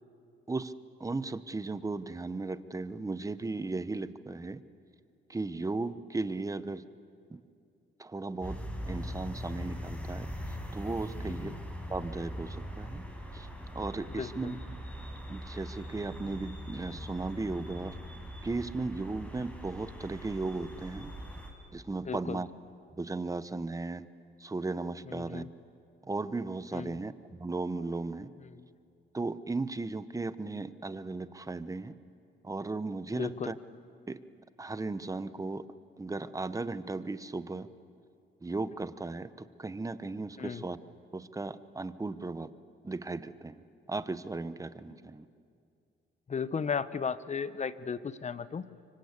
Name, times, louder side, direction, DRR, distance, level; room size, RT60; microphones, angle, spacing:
voice 1, 1.0-4.6 5.3-6.8 7.3-7.4 8.0-8.6 8.9-11.5 11.9-13.0 13.3-13.5 13.7-14.8 15.3-18.0 18.4-21.1 21.7-22.5 23.0-24.0 24.4-25.5 26.0-28.3 29.1-31.9 32.4-33.6 34.1-34.2 34.6-35.6 36.0-37.7 38.4-40.8 41.1-42.5 42.8-45.3, right 3 dB, 15° right, 14 dB, 1.0 m, -36 dB
sound 1, 8.4-21.5, equal, 5° left, 5.1 m, -41 dB
voice 2, 11.2-11.6 14.1-14.5 22.0-22.4 25.1-25.5 26.7-27.0 33.1-33.5 40.4-40.6 46.3-48.7, left 6 dB, 35° left, 15 dB, 0.9 m, -35 dB
25.0 x 24.5 x 8.3 m, 2.4 s
cardioid pair, 90°, 20 cm